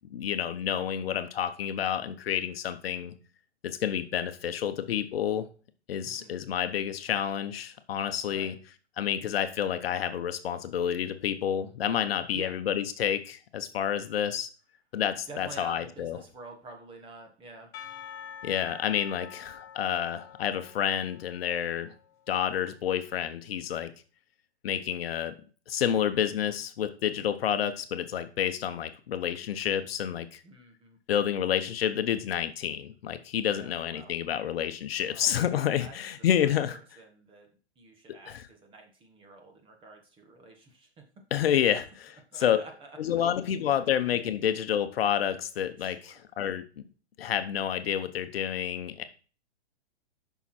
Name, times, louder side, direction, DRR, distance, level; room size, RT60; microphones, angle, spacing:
voice 1, 0.1-3.1 3.6-5.5 5.9-8.5 9.0-14.5 14.9-16.2 18.4-21.9 22.3-23.9 24.6-25.3 25.7-30.3 31.1-36.8 38.3-38.5 41.3-42.6 43.0-46.6 47.2-49.0, left 9 dB, 60° left, 10 dB, 0.9 m, -29 dB
voice 2, 6.0-6.3 8.3-8.5 12.3-12.5 15.3-17.7 30.4-31.0 33.5-34.1 35.0-37.5 37.7-41.0 42.3-43.2 43.6-43.7 45.8-46.2, right 3 dB, 15° right, 3 dB, 1.3 m, -49 dB
Percussion / Church bell, 17.7-22.3, left 9 dB, 10° left, 0.4 m, -47 dB
7.1 x 5.9 x 4.3 m, 0.36 s
hypercardioid pair, 150°, 34 cm